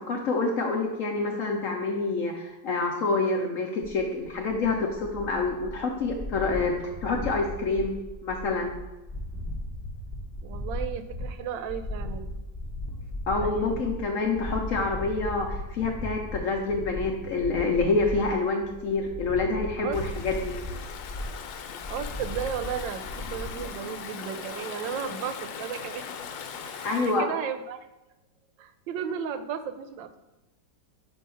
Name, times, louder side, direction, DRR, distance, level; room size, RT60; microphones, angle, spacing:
voice 1, 0.0-8.0 8.2-8.7 13.3-20.5 26.8-27.3, left 3 dB, 65° left, 1 dB, 0.8 m, -27 dB
sound 1, 3.8-23.7, left 1 dB, 15° left, 0.7 m, -37 dB
voice 2, 10.4-12.3 13.4-13.9 19.8-20.3 21.9-26.1 26.6-27.8 28.6-30.2, right 8 dB, 90° right, 10 dB, 1.3 m, -35 dB
Stream / Ocean, 19.9-27.2, left 7 dB, 85° left, 1.3 m, -39 dB
6.8 x 2.7 x 5.4 m, 0.99 s
omnidirectional pair, 2.0 m